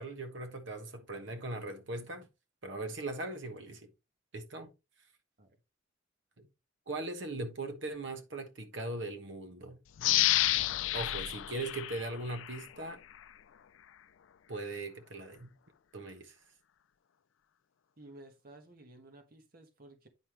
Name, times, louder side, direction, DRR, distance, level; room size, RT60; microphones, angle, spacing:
voice 1, 0.0-2.3 2.6-3.9 4.3-4.7 6.4-6.5 6.9-9.8 10.9-13.0 14.5-15.5 15.9-16.3, right 2 dB, 70° right, 1.3 m, -39 dB
sound 1, 10.0-12.7 13.1-13.2, left 15 dB, 80° left, 0.4 m, -30 dB
voice 2, 18.0-20.1, right 1 dB, 45° right, 1.2 m, -54 dB
9.5 x 5.5 x 3.1 m
head